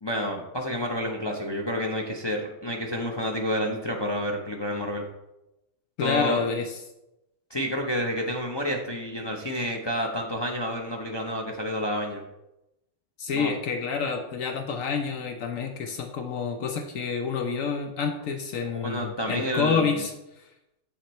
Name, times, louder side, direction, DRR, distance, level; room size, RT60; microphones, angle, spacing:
voice 1, 0.0-5.0 6.0-6.4 7.5-12.2 13.3-13.5 18.7-19.9, equal, 30° left, 0 dB, 0.5 m, -29 dB
voice 2, 6.0-6.8 13.2-20.1, left 5 dB, 70° left, 5 dB, 1.0 m, -28 dB
7.2 x 7.1 x 3.1 m, 0.91 s
omnidirectional pair, 1.5 m